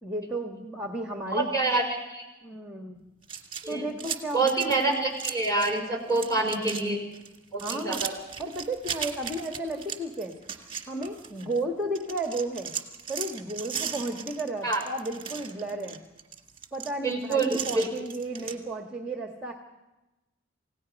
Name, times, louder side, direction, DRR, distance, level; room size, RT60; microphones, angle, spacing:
voice 1, 0.0-1.7 2.4-3.0 3.7-4.7 7.6-8.0 8.4-10.3 10.9-12.7 13.1-16.0 16.7-19.5, right 1 dB, 5° right, 3 dB, 1.5 m, -33 dB
voice 2, 1.3-2.2 3.6-3.9 4.3-7.0 7.5-8.2 14.6-14.8 17.0-17.5 17.7-17.9, right 3 dB, 15° left, 2 dB, 5.5 m, -26 dB
sound 1, 3.2-5.8 6.1-6.8 7.1-11.6 12.0-18.6, right 7 dB, 25° right, 1.9 m, -37 dB
28.5 x 17.0 x 5.3 m, 1.0 s
head